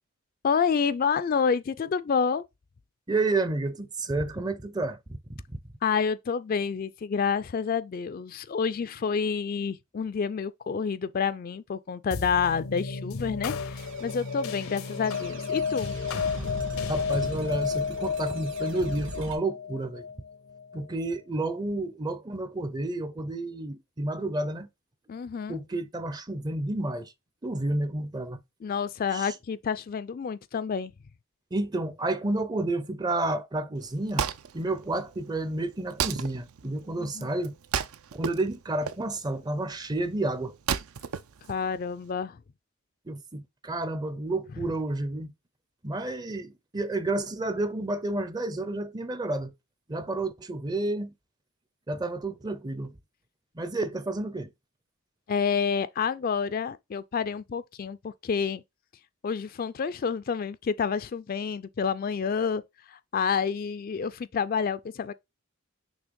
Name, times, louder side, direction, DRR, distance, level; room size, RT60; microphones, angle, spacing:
voice 1, 0.4-2.4 5.8-15.9 25.1-25.6 28.6-30.9 37.0-37.3 41.5-42.4 55.3-58.6 59.2-62.6 62.9-65.1, left 6 dB, 40° left, 0.3 m, -28 dB
voice 2, 3.1-5.2 5.5-5.6 16.9-20.0 20.7-24.7 25.5-27.1 27.4-28.4 29.1-29.3 31.5-34.3 34.5-37.5 38.1-40.5 43.1-45.3 45.8-49.5 49.9-51.1 51.9-52.9 53.6-54.5, right 2 dB, 20° right, 0.5 m, -30 dB
sound 1, 12.1-20.8, left 5 dB, 75° left, 0.6 m, -32 dB
sound 2, 13.7-19.4, right 1 dB, 55° right, 1.8 m, -42 dB
Wood, 33.8-42.1, right 7 dB, 80° right, 0.5 m, -35 dB
6.2 x 3.2 x 5.1 m
head